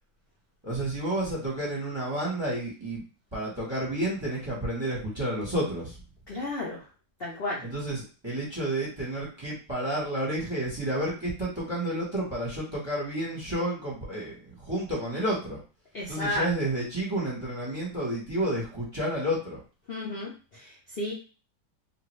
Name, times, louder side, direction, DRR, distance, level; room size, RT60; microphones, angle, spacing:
voice 1, 0.6-3.0 3.3-6.0 7.6-15.6 16.1-19.6, right 1 dB, 20° right, -4 dB, 1.0 m, -30 dB
voice 2, 6.3-6.8 7.2-7.6 15.9-16.5 19.9-21.1, left 1 dB, 50° left, -5 dB, 0.7 m, -33 dB
2.7 x 2.5 x 3.1 m, 0.35 s
omnidirectional pair, 1.8 m